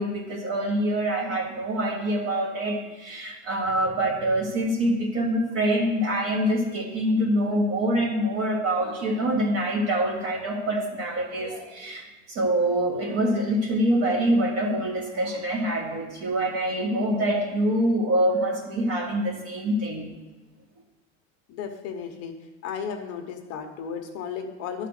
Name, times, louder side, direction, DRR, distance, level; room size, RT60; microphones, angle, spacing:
voice 1, 0.0-20.1, right 1 dB, 40° right, 2 dB, 1.7 m, -25 dB
voice 2, 21.5-22.4 22.6-24.9, left 7 dB, 40° left, 4 dB, 0.9 m, -34 dB
12.0 x 4.1 x 6.4 m, 1.2 s
supercardioid pair, 145°, 38 cm